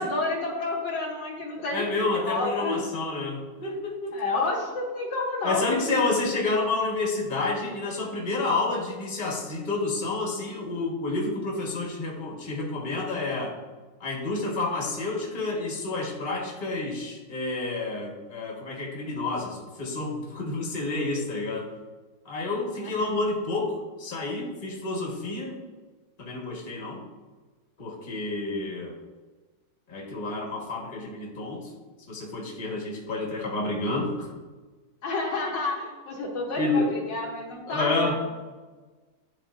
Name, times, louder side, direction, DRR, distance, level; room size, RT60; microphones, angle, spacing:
voice 1, 0.0-2.8 4.1-5.8 6.8-6.9 22.8-23.1 35.0-38.1, left 3 dB, 65° left, -1 dB, 1.6 m, -30 dB
voice 2, 1.5-4.2 5.4-13.5 14.0-21.7 22.2-25.6 26.2-27.0 27.8-28.9 29.9-31.7 32.1-34.3 36.6-36.9 37.7-38.1, left 2 dB, 25° left, -2 dB, 1.4 m, -29 dB
10.5 x 4.4 x 2.5 m, 1.3 s
omnidirectional pair, 2.2 m